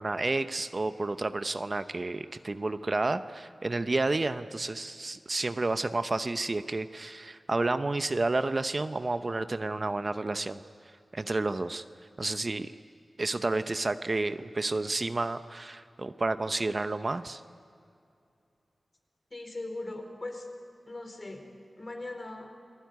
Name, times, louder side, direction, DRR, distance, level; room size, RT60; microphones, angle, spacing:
voice 1, 0.0-10.6 11.1-11.8 12.2-12.7 13.2-17.4, right 2 dB, 45° right, 11 dB, 0.8 m, -30 dB
voice 2, 19.3-20.5 20.9-21.4 21.8-22.5, left 2 dB, 40° left, 3 dB, 4.5 m, -39 dB
29.0 x 19.5 x 9.4 m, 2.5 s
wide cardioid pair, 75°, 0 cm